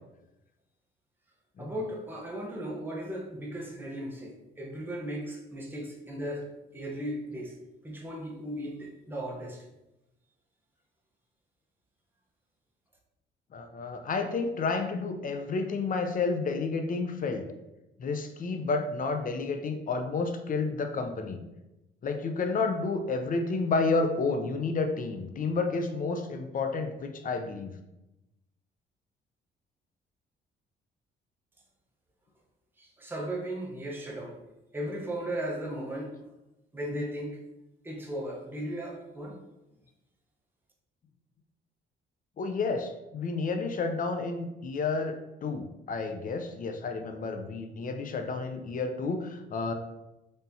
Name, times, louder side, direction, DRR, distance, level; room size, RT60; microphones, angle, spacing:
voice 1, 1.6-7.6 7.8-9.7 32.8-34.4 34.7-36.2 36.7-37.4 37.8-39.4, right 1 dB, 10° right, -2 dB, 0.8 m, -36 dB
voice 2, 13.5-17.5 18.0-21.4 22.0-27.7 42.4-49.7, left 4 dB, 45° left, 6 dB, 0.5 m, -30 dB
4.1 x 3.4 x 2.7 m, 0.96 s
cardioid pair, 90°, 20 cm